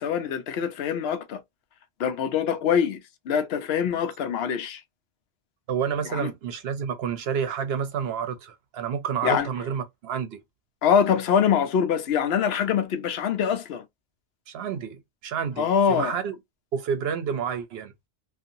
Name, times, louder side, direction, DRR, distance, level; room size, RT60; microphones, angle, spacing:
voice 1, 0.0-1.4 2.0-4.8 6.1-6.3 9.2-9.5 10.8-13.8 15.6-16.2, left 7 dB, 75° left, 0.8 m, -24 dB
voice 2, 5.7-10.4 14.5-16.4 16.7-18.1, right 7 dB, 70° right, 0.9 m, -29 dB
2.7 x 2.5 x 2.6 m
omnidirectional pair, 1.1 m